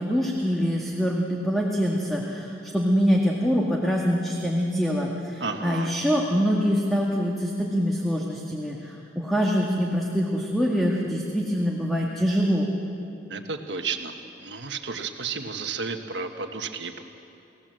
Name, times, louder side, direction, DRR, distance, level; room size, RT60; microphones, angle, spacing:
voice 1, 0.0-12.7, equal, ahead, -2 dB, 1.8 m, -24 dB
voice 2, 5.4-5.9 13.3-14.1 14.4-17.0, right 5 dB, 70° right, 5 dB, 1.3 m, -32 dB
29.5 x 17.5 x 7.7 m, 2.8 s
head